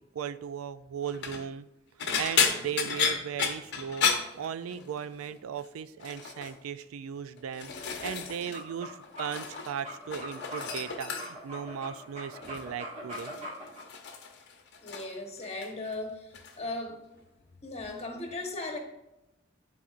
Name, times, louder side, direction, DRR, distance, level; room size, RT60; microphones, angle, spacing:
voice 1, 0.0-1.7 2.0-4.1 4.4-13.3, right 8 dB, 90° right, 13 dB, 0.4 m, -37 dB
sound 1, 1.0-1.4 2.0-5.0 5.3-5.7 6.0-6.5 7.2-8.6 8.9-9.7 10.0-11.5 12.4-12.7 13.1-15.2 15.4-16.0 16.3-16.6 17.8-17.9, left 6 dB, 55° left, 0.8 m, -32 dB
sound 2, 8.4-13.8, left 1 dB, 35° right, 1.8 m, -42 dB
voice 2, 14.8-16.3 16.6-17.0 17.6-18.8, left 2 dB, 30° left, 2 dB, 1.1 m, -37 dB
10.0 x 4.1 x 2.5 m, 0.90 s
head